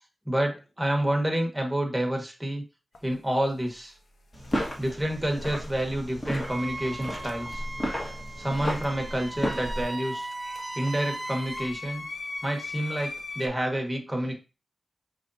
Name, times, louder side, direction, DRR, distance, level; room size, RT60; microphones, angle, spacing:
voice 1, 0.3-2.6 3.0-3.9 4.8-7.6 8.4-10.3 10.8-12.0 12.4-14.3, right 1 dB, 5° right, 1 dB, 1.2 m, -28 dB
sound 1, 2.9-3.1 4.3-4.9 7.0-8.0 8.3-13.5, left 3 dB, 80° left, 0.6 m, -41 dB
sound 2, 4.3-9.8, equal, 35° left, 1.5 m, -33 dB
Wind instrument woodwind instrument, 6.4-11.7, right 2 dB, 20° right, 0.4 m, -38 dB
5.2 x 3.3 x 2.6 m, 0.30 s
wide cardioid pair, 100°, 0 cm